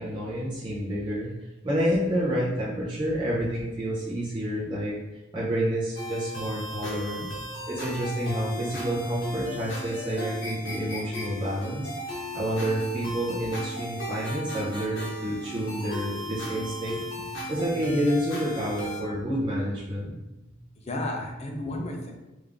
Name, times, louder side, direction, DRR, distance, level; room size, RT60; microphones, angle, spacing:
voice 1, 0.0-7.3 7.7-11.9 12.3-17.0 17.5-20.2, equal, 25° right, -8 dB, 0.7 m, -29 dB
sound 1, 5.9-19.0, left 1 dB, 70° left, 1.1 m, -36 dB
voice 2, 7.3-7.6 17.2-17.3 19.2-19.3 20.5-22.1, left 1 dB, 35° left, 1 dB, 0.5 m, -34 dB
3.5 x 2.6 x 3.5 m, 1.0 s
head